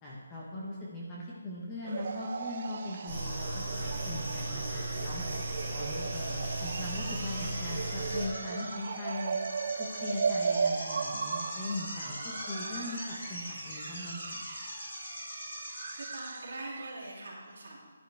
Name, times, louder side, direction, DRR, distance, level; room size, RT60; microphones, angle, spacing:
voice 1, 0.0-3.6 4.0-5.2 5.7-9.4 9.7-14.5, left 2 dB, 10° left, -5 dB, 1.1 m, -40 dB
sound 1, 1.8-16.9, right 5 dB, 30° right, 0.3 m, -37 dB
sound 2, 2.0-16.4, left 1 dB, 35° left, 3.5 m, -43 dB
sound 3, 3.1-8.3, right 2 dB, 10° right, 2.7 m, -36 dB
voice 2, 15.9-17.8, right 2 dB, 45° right, -5 dB, 2.9 m, -43 dB
11.0 x 11.0 x 3.4 m, 1.4 s
hypercardioid pair, 180°, 0 cm